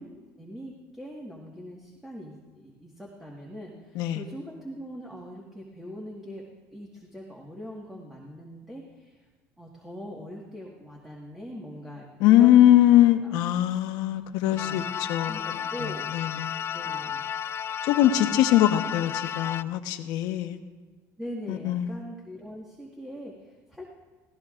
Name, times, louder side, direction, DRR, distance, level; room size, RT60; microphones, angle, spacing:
voice 1, 0.0-9.2 9.6-13.8 14.2-14.9 15.3-16.4 16.7-17.2 18.1-18.4 21.2-24.0, equal, 5° right, -3 dB, 1.6 m, -42 dB
voice 2, 12.2-15.5 16.1-16.7 17.9-20.6 21.5-21.9, left 12 dB, 70° left, 7 dB, 1.1 m, -21 dB
sound 1, 14.6-19.6, left 9 dB, 35° left, 0.3 m, -33 dB
23.5 x 16.5 x 2.5 m, 1.3 s
cardioid pair, 140°, 7 cm